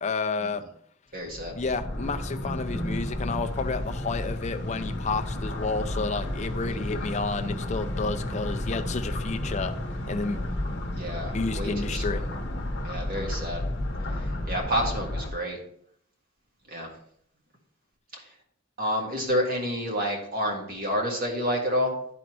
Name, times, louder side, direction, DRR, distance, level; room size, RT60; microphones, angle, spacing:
voice 1, 0.0-0.6 1.6-9.7 10.1-10.4 11.3-12.2, left 4 dB, 35° left, 7 dB, 0.5 m, -30 dB
voice 2, 1.1-1.6 6.7-7.0 11.0-12.2 12.8-13.6 14.2-15.6 16.7-16.9 18.1-18.2 18.8-21.9, equal, 45° right, 0 dB, 1.8 m, -29 dB
sound 1, 1.2-15.3, left 1 dB, 55° left, 1.0 m, -32 dB
12.0 x 4.0 x 3.1 m, 0.67 s
head